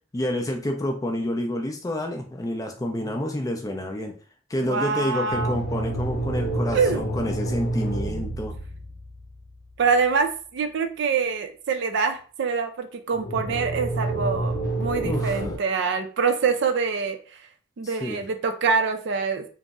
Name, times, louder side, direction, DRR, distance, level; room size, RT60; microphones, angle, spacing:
voice 1, 0.1-4.2 4.5-8.6 15.0-15.5 17.8-18.2, left 1 dB, 15° left, 3 dB, 0.3 m, -29 dB
voice 2, 4.7-5.6 6.7-7.0 9.8-17.2 17.8-19.4, right 5 dB, 55° right, 7 dB, 0.4 m, -25 dB
sound 1, 5.3-9.5 13.1-15.6, right 2 dB, 55° left, 0.8 m, -28 dB
2.5 x 2.0 x 3.5 m, 0.39 s
head